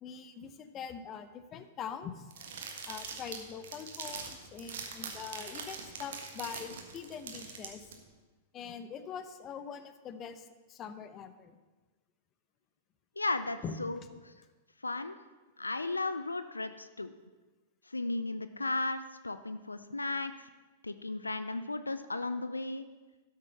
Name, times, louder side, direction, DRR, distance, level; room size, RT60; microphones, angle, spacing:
voice 1, 0.0-2.3 2.9-7.9 8.5-11.6 13.6-13.7, left 7 dB, 30° left, 11 dB, 0.8 m, -43 dB
sound 1, 2.3-7.9, right 5 dB, 65° right, 1.6 m, -43 dB
voice 2, 13.2-14.0 14.2-14.3 14.8-15.2 15.6-17.1 17.9-20.5 20.8-22.8, left 2 dB, 85° left, 11 dB, 0.4 m, -35 dB
12.5 x 6.6 x 5.7 m, 1.2 s
figure-of-eight pair, 100°, 0 cm